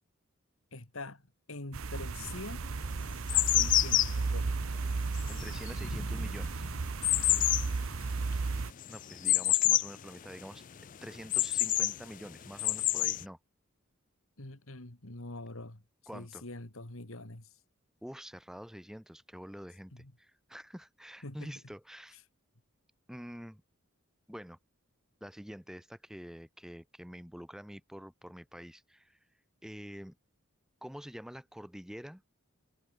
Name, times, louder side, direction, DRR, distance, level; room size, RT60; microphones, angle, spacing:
voice 1, 0.7-2.7 3.3-4.5 7.2-7.5 14.4-15.8 16.1-17.5 19.9-20.1 21.2-21.5, left 2 dB, 75° left, 2.6 m, -44 dB
sound 1, 1.7-8.7, right 4 dB, 75° right, 0.7 m, -34 dB
sound 2, 2.2-2.3 2.9-10.0 10.3-10.4 10.8-12.0 12.5-13.2, left 14 dB, 40° left, 0.4 m, -29 dB
voice 2, 5.3-6.7 8.9-13.4 16.1-16.4 18.0-22.2 23.1-23.6 24.3-24.6 25.2-29.2 29.6-30.2 30.8-32.2, equal, ahead, 1.3 m, -47 dB
head